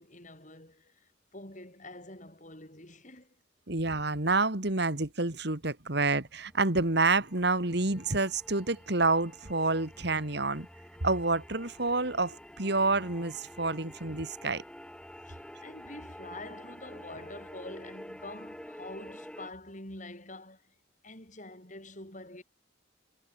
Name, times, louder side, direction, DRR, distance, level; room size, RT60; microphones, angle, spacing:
voice 1, 0.0-3.4 15.2-20.7 21.0-22.4, left 2 dB, 40° left, 7.9 m, -46 dB
voice 2, 3.7-10.7 11.0-14.6, right 3 dB, 55° right, 2.4 m, -28 dB
sound 1, 6.3-19.5, equal, 5° left, 4.5 m, -49 dB
head